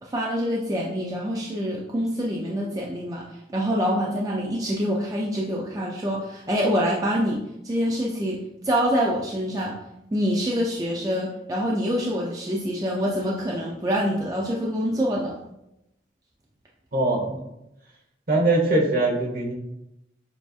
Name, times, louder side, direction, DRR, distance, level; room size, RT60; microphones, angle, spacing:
voice 1, 0.0-3.2 3.5-8.4 8.6-9.8 10.1-15.4, equal, 20° right, -3 dB, 0.4 m, -26 dB
voice 2, 16.9-17.4 18.3-19.5, right 2 dB, 50° right, -1 dB, 1.0 m, -22 dB
6.9 x 2.6 x 2.4 m, 0.87 s
head